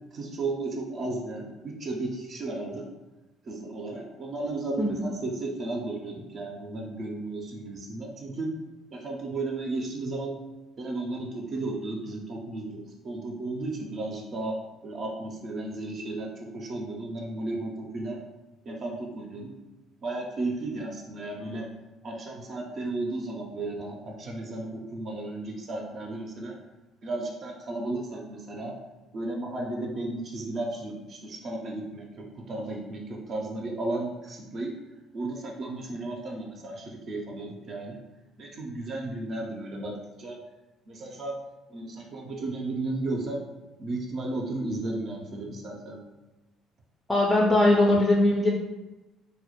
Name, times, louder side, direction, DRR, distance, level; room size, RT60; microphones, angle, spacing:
voice 1, 0.0-2.9 3.4-8.5 8.9-10.4 10.8-14.6 14.8-18.2 18.7-19.5 20.0-21.7 22.0-26.5 27.0-28.7 29.1-34.7 35.1-38.0 38.4-40.4 40.9-41.4 41.7-43.4 43.8-46.0, right 2 dB, 50° right, 0 dB, 0.4 m, -34 dB
voice 2, 47.1-48.5, left 1 dB, 20° left, -2 dB, 0.3 m, -21 dB
2.1 x 2.0 x 2.8 m, 1.1 s
hypercardioid pair, 60°, 0 cm